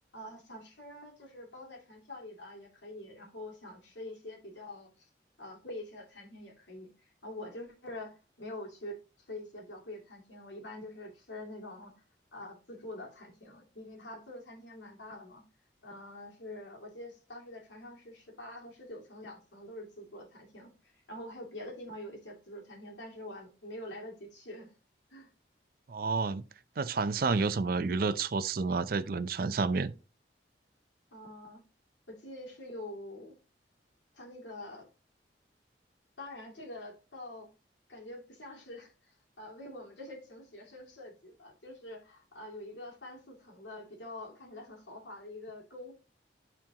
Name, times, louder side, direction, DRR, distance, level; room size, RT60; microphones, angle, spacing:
voice 1, 0.1-5.1 5.4-12.0 12.3-15.4 15.8-24.7 25.1-25.3 31.1-31.6 32.1-33.3 34.1-34.9 36.2-37.5 37.9-45.9, left 1 dB, 90° left, 2.5 m, -46 dB
voice 2, 25.9-26.4 26.8-29.9, right 4 dB, 55° right, 0.5 m, -30 dB
11.0 x 4.4 x 2.9 m
head